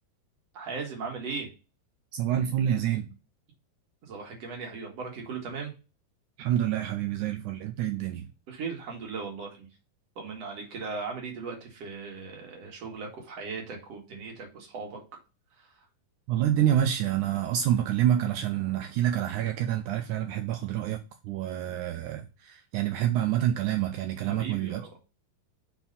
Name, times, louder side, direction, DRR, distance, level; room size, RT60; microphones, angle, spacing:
voice 1, 0.5-1.5 4.0-5.7 8.5-9.7 10.2-15.0 15.6-15.7 24.3-24.9, right 4 dB, 50° right, 2.3 m, -38 dB
voice 2, 2.1-3.1 6.4-8.3 16.3-25.0, right 11 dB, 85° right, 1.7 m, -27 dB
5.6 x 4.4 x 5.3 m
omnidirectional pair, 4.2 m